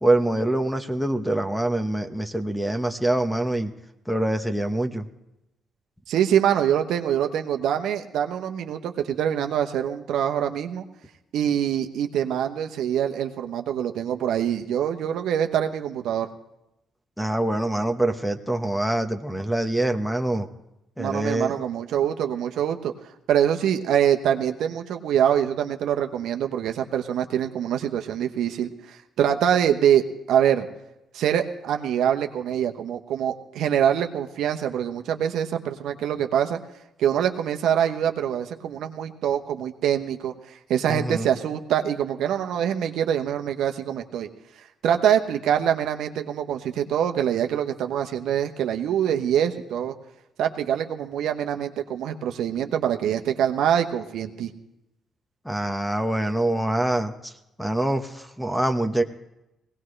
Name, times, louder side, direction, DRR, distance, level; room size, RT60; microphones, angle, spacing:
voice 1, 0.0-3.7 4.1-5.1 17.2-20.5 21.0-21.6 40.9-41.3 55.4-57.3 57.6-59.0, right 1 dB, ahead, 8 dB, 1.2 m, -25 dB
voice 2, 6.1-10.8 11.3-16.3 21.0-22.9 23.3-30.0 30.3-30.7 31.1-36.6 37.0-44.3 44.8-49.9 50.4-54.5, right 9 dB, 80° right, 5 dB, 1.0 m, -24 dB
20.0 x 18.0 x 3.3 m, 0.90 s
supercardioid pair, 70°, 0 cm